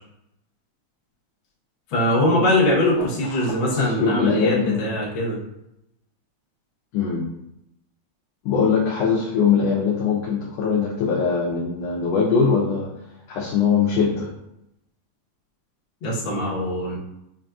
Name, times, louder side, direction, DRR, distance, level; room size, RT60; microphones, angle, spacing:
voice 1, 1.9-5.4 16.0-17.0, left 1 dB, 60° left, -5 dB, 1.4 m, -22 dB
voice 2, 3.7-4.9 6.9-7.2 8.4-12.9 13.3-14.3, left 6 dB, 80° left, -2 dB, 1.5 m, -21 dB
5.8 x 2.5 x 2.3 m, 0.84 s
omnidirectional pair, 3.3 m